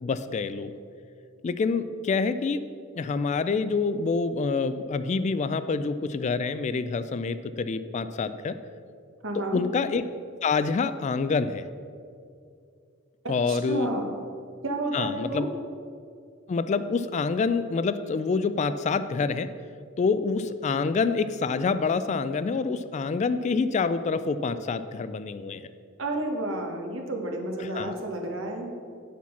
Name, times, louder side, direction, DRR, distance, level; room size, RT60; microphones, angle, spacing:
voice 1, 0.0-0.7 1.4-2.6 3.0-8.6 9.3-10.0 10.4-11.7 13.3-13.9 14.9-15.4 16.5-19.5 20.0-25.6 27.7-27.9, left 4 dB, 35° left, 12 dB, 0.3 m, -27 dB
voice 2, 9.2-9.6 13.2-14.0 14.6-15.5 26.0-28.7, right 1 dB, 75° right, 2 dB, 1.3 m, -31 dB
8.5 x 5.8 x 5.9 m, 2.3 s
head